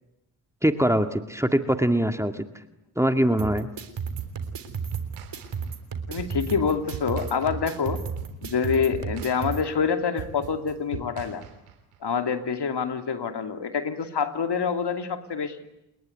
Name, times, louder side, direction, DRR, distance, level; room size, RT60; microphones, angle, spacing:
voice 1, 0.6-2.5 3.0-3.7, right 1 dB, 5° right, 7 dB, 2.1 m, -23 dB
sound 1, 3.4-9.6, right 6 dB, 60° right, 3.5 m, -34 dB
sound 2, 4.2-12.0, right 9 dB, 85° right, 3.3 m, -40 dB
voice 2, 6.1-8.0 8.4-11.4 12.0-15.6, left 6 dB, 55° left, 7 dB, 2.9 m, -26 dB
30.0 x 21.0 x 9.5 m, 0.90 s
hypercardioid pair, 45°, 49 cm